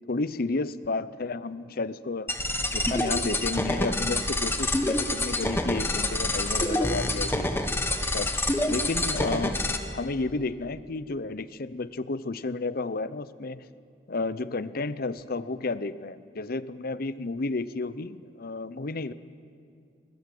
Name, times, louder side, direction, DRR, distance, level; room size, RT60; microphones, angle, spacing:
voice 1, 0.1-2.3 2.7-7.5 8.1-8.3 8.7-9.6 9.9-13.6 14.1-19.1, left 3 dB, 55° left, 15 dB, 0.7 m, -32 dB
sound 1, 2.3-9.8, left 1 dB, 15° left, 1.4 m, -27 dB
21.0 x 21.0 x 7.8 m, 2.4 s
head